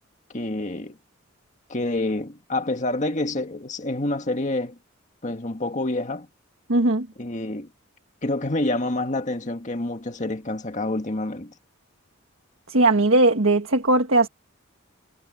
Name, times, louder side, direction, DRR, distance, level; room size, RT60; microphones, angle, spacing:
voice 1, 0.3-1.0 1.7-4.8 5.2-6.3 7.2-7.7 8.2-11.5, left 2 dB, 35° left, 1.8 m, -27 dB
voice 2, 6.7-7.1 12.7-14.3, right 2 dB, 75° right, 1.6 m, -19 dB
head